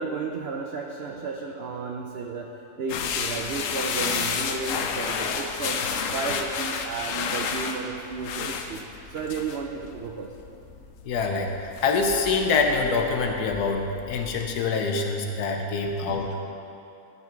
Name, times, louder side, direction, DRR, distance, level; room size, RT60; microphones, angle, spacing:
voice 1, 0.0-2.5 2.8-5.8 6.1-8.8 9.1-10.3 16.0-16.2, right 4 dB, 75° right, 1 dB, 0.5 m, -33 dB
sound 1, 2.9-14.5, left 6 dB, 70° left, 0.9 m, -32 dB
voice 2, 11.0-16.4, left 4 dB, 85° left, 3 dB, 1.3 m, -25 dB
12.5 x 4.3 x 4.4 m, 2.8 s
omnidirectional pair, 1.6 m